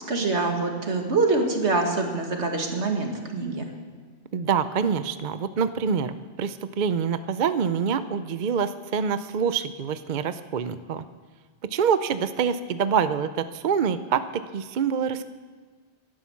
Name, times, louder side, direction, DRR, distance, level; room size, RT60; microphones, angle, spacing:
voice 1, 0.1-3.7, right 3 dB, 70° right, 2 dB, 2.2 m, -25 dB
voice 2, 4.3-11.0 11.6-15.3, right 7 dB, 50° right, 12 dB, 0.6 m, -26 dB
17.0 x 11.5 x 7.1 m, 1.5 s
omnidirectional pair, 1.2 m